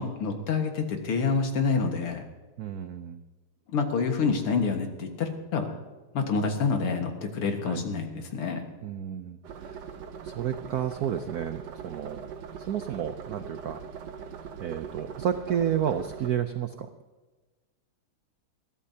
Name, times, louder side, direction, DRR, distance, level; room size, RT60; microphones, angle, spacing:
voice 1, 0.0-2.2 3.7-5.7 6.1-8.6, left 5 dB, 80° left, 4 dB, 2.5 m, -27 dB
voice 2, 2.6-3.2 7.7-7.8 8.8-9.8 10.2-12.3 12.6-13.8 14.6-16.9, right 9 dB, 75° right, 8 dB, 0.8 m, -31 dB
sound 1, 9.4-16.3, right 7 dB, 60° right, 1.3 m, -41 dB
21.5 x 14.0 x 2.8 m, 1.3 s
omnidirectional pair, 2.4 m